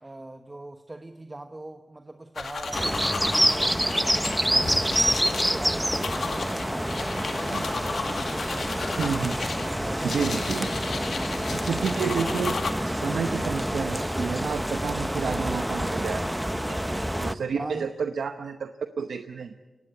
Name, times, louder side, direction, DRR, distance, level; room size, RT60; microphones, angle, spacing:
voice 1, 0.0-8.8 9.8-10.6 11.3-11.5 17.6-17.9, right 2 dB, 25° right, 7 dB, 1.2 m, -42 dB
sound 1, 2.4-12.7, left 5 dB, 75° left, 1.9 m, -34 dB
sound 2, 2.7-17.3, equal, 5° right, 0.9 m, -27 dB
voice 2, 9.0-9.4 10.0-10.7 11.5-12.6 12.8-19.7, right 6 dB, 80° right, 8 dB, 0.8 m, -30 dB
23.0 x 18.5 x 8.2 m, 1.1 s
cardioid pair, 55°, 0 cm